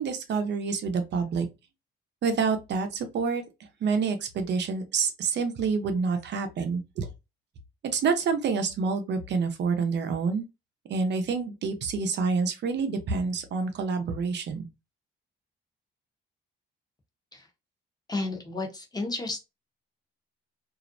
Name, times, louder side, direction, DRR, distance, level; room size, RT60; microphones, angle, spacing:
voice 1, 0.0-1.5 2.2-3.4 3.8-7.1 7.8-10.4 10.9-14.7, right 5 dB, 60° right, 0.6 m, -27 dB
voice 2, 18.1-19.4, left 2 dB, 20° left, 0.8 m, -32 dB
2.4 x 2.0 x 2.5 m
cardioid pair, 90°, 20 cm